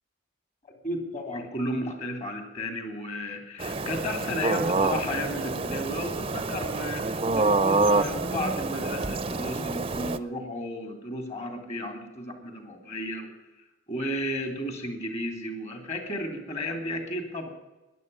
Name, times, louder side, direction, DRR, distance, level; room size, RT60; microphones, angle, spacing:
voice 1, 0.8-13.3 13.9-17.5, left 1 dB, 35° left, 5 dB, 3.3 m, -33 dB
sound 1, 3.6-10.2, right 3 dB, 30° right, 0.7 m, -27 dB
14.0 x 11.0 x 9.6 m, 1.0 s
head